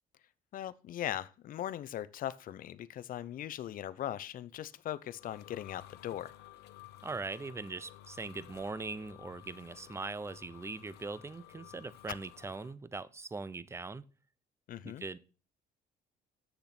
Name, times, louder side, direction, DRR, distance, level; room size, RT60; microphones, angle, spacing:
voice 1, 0.5-6.3 14.7-15.0, left 12 dB, 55° left, 0.7 m, -39 dB
sound 1, 4.7-12.7, left 14 dB, 80° left, 1.0 m, -54 dB
voice 2, 7.0-14.1 14.8-15.2, right 3 dB, 15° right, 0.6 m, -41 dB
8.1 x 6.8 x 5.9 m
cardioid pair, 110°, 17 cm